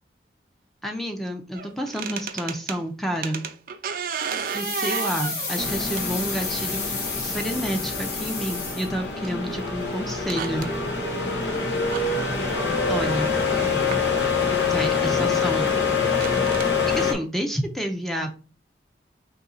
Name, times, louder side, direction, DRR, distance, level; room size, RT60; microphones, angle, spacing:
voice 1, 0.8-3.5 4.5-6.9 7.2-10.7 12.9-13.3 14.7-15.7 16.9-18.4, equal, ahead, 4 dB, 0.5 m, -29 dB
sound 1, 1.5-2.8 3.2-6.4 7.5-7.6 9.2-9.4 9.8-9.9 10.2-10.7 11.9-12.1 13.9-14.0 14.7-14.8 16.1-16.7, right 6 dB, 50° right, 0.4 m, -32 dB
sound 2, 4.4-9.3 9.5-9.6, left 4 dB, 65° left, 1.3 m, -31 dB
sound 3, 5.6-17.1, left 4 dB, 80° left, 1.2 m, -25 dB
voice 2, 12.9-13.9, right 2 dB, 35° left, -2 dB, 1.9 m, -44 dB
4.1 x 2.8 x 4.0 m, 0.35 s
head